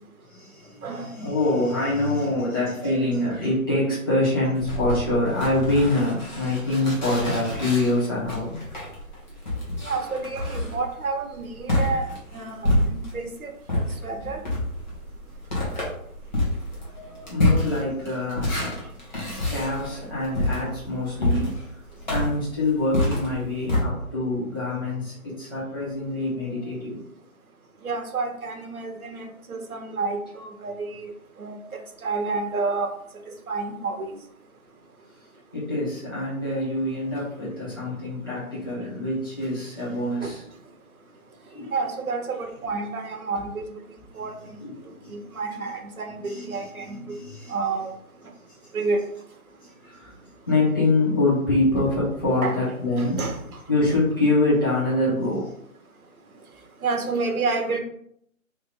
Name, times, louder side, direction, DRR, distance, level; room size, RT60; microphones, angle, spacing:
voice 1, 0.3-8.6 14.3-14.4 16.9-18.7 19.2-21.6 22.1-27.0 35.5-40.4 41.5-41.7 44.1-44.3 44.6-45.3 46.2-47.5 49.6-50.2 50.5-53.2 53.7-55.5, left 2 dB, 15° left, -11 dB, 0.9 m, -25 dB
sound 1, 4.5-13.3 13.7-23.8, left 1 dB, 30° left, 1.2 m, -27 dB
voice 2, 9.8-12.1 12.3-14.4 27.8-31.1 31.4-31.6 32.0-32.9 33.3-34.1 40.2-40.3 41.7-43.8 44.1-44.6 45.1-47.2 47.5-47.9 48.7-49.0 52.4-52.6 53.0-53.4 56.8-57.8, right 4 dB, 80° right, 5 dB, 1.0 m, -29 dB
3.4 x 3.1 x 3.8 m, 0.70 s
hypercardioid pair, 180°, 43 cm